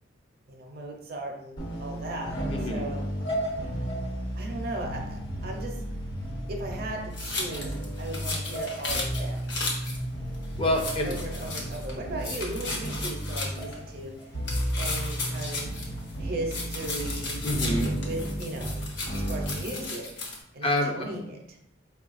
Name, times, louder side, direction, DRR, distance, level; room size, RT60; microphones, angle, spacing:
voice 1, 0.5-3.0 4.4-5.8 6.5-7.7 8.0-9.4 11.0-14.1 14.8-15.9 16.2-17.4 18.0-18.8 19.1-20.3 20.5-21.6, right 1 dB, 55° right, 1 dB, 0.6 m, -37 dB
sound 1, 1.6-19.6, right 1 dB, 85° left, 1.1 m, -33 dB
voice 2, 2.5-2.8 10.6-11.2 17.4-17.9 20.6-20.9, left 1 dB, 30° left, 3 dB, 0.4 m, -26 dB
sound 2, 7.1-10.0 10.3-10.4 10.7-11.9 12.2-13.8 14.4-16.2 16.5-20.4, left 3 dB, 65° left, 0.8 m, -35 dB
4.3 x 2.3 x 2.5 m, 0.79 s
head